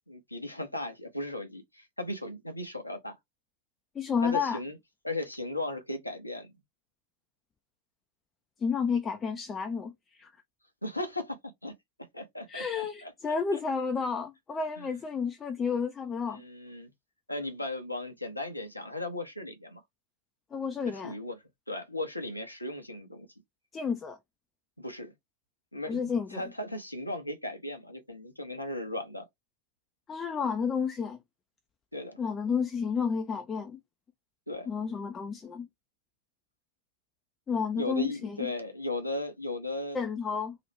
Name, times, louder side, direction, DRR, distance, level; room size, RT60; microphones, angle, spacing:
voice 1, 0.1-3.2 4.2-4.8 5.0-6.5 10.8-11.7 12.1-13.6 14.8-14.9 16.3-16.9 17.3-19.8 20.9-21.4 21.7-23.3 24.8-25.1 25.7-29.2 31.9-32.2 34.5-34.7 37.7-40.0, left 2 dB, 85° left, 0.6 m, -36 dB
voice 2, 4.0-4.6 8.6-10.3 12.5-16.4 20.5-21.1 23.7-24.2 25.9-26.4 30.1-31.2 32.2-33.8 34.7-35.7 37.5-38.5 39.9-40.6, left 6 dB, 20° left, 0.4 m, -31 dB
2.9 x 2.0 x 3.1 m
figure-of-eight pair, 90°, 0 cm